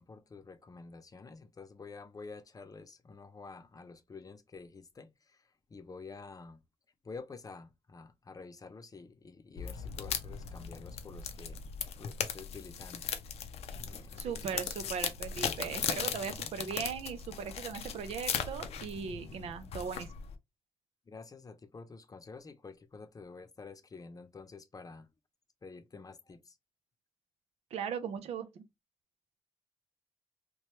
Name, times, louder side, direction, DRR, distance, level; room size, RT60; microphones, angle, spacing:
voice 1, 0.0-6.6 7.0-11.6 12.0-13.1 13.8-14.6 21.1-25.1 25.6-26.6, left 4 dB, 35° left, 0.6 m, -49 dB
sound 1, 9.6-20.4, left 7 dB, 90° left, 0.5 m, -38 dB
voice 2, 14.2-20.1 27.7-28.6, right 7 dB, 85° right, 0.5 m, -38 dB
3.0 x 2.2 x 3.0 m
cardioid pair, 70°, 10 cm